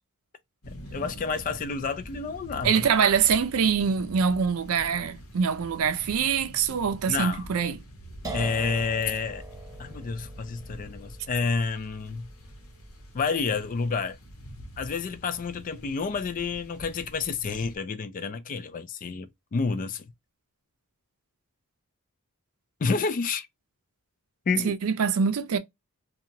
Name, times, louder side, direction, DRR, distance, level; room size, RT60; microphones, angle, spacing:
sound 1, 0.6-17.8, equal, 70° left, 1.0 m, -46 dB
voice 1, 0.7-2.9 7.1-7.4 8.3-9.4 9.8-12.3 13.1-14.2 14.8-20.0 22.8-23.5 24.5-24.7, left 5 dB, 35° left, 0.3 m, -29 dB
voice 2, 2.6-7.8 24.6-25.6, right 6 dB, 70° right, 0.5 m, -24 dB
sound 2, 8.2-15.8, right 3 dB, 15° right, 0.7 m, -43 dB
2.8 x 2.3 x 2.7 m
head